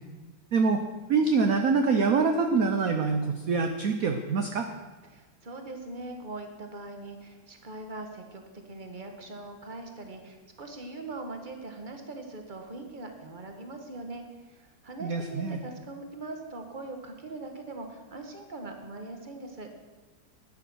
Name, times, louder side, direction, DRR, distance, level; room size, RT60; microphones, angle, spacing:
voice 1, 0.5-0.8 1.1-4.7 15.0-15.6, right 4 dB, 55° right, 5 dB, 1.0 m, -25 dB
voice 2, 5.1-19.7, right 2 dB, 25° right, 4 dB, 1.4 m, -41 dB
12.5 x 9.8 x 6.2 m, 1.3 s
omnidirectional pair, 2.2 m